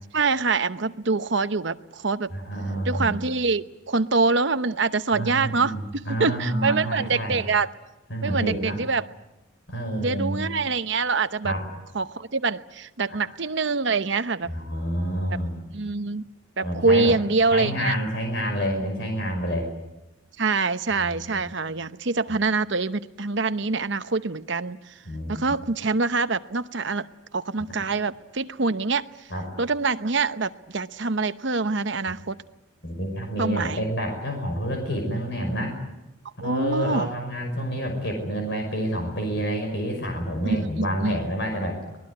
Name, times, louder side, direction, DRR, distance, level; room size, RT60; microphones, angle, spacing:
voice 1, 0.1-2.3 2.8-7.7 8.2-9.1 10.0-11.5 11.9-14.5 15.7-16.2 16.6-18.0 20.4-25.0 25.3-27.1 27.3-29.3 29.6-32.4 33.4-33.8 36.4-37.1 40.4-41.2, right 4 dB, 55° right, 11 dB, 0.9 m, -25 dB
voice 2, 2.3-3.2 5.1-7.4 8.1-8.8 9.7-10.4 11.4-11.6 14.5-15.6 16.6-17.1 17.5-19.7 21.0-21.5 25.1-25.4 29.3-29.4 32.8-35.8 36.4-41.8, equal, 55° left, 3 dB, 5.8 m, -28 dB
24.5 x 20.0 x 9.7 m, 0.98 s
head